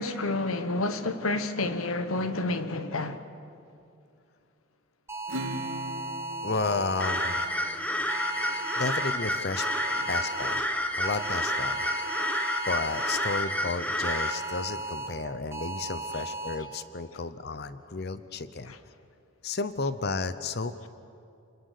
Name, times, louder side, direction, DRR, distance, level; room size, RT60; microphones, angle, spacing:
voice 1, 0.0-3.2 9.9-10.1 18.6-18.8, left 2 dB, 85° left, 1.3 m, -30 dB
sound 1, 5.1-7.5 8.1-9.1 9.6-10.6 11.0-13.4 14.0-15.1 15.5-16.5, right 2 dB, 15° right, 1.8 m, -36 dB
Acoustic guitar / Strum, 5.3-8.2, right 1 dB, 65° right, 1.7 m, -39 dB
voice 2, 6.4-7.4 8.8-9.7 10.1-10.6 10.9-11.9 12.7-18.7 19.4-20.9, left 4 dB, 50° left, 0.8 m, -32 dB
sound 2, 7.0-14.3, left 1 dB, 5° left, 1.2 m, -30 dB
29.5 x 21.5 x 6.6 m
head